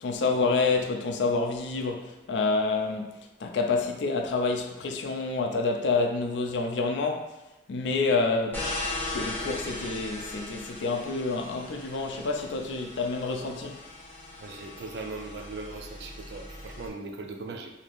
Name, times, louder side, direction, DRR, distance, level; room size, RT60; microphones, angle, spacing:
voice 1, 0.0-7.3 7.7-8.7 9.1-13.8, left 3 dB, 80° left, 0.4 m, -28 dB
sound 1, 8.5-16.9, left 2 dB, 10° left, 0.5 m, -38 dB
voice 2, 14.4-17.7, right 3 dB, 65° right, 0.4 m, -39 dB
2.7 x 2.5 x 3.3 m
head